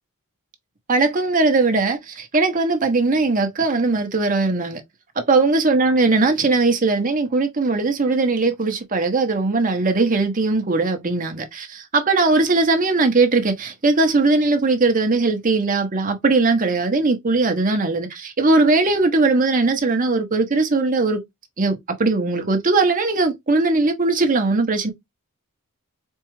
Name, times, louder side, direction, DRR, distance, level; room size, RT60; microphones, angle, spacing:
voice 1, 0.9-4.8 5.3-21.2 21.6-24.9, right 3 dB, 35° right, 0.8 m, -19 dB
4.4 x 2.4 x 3.0 m
head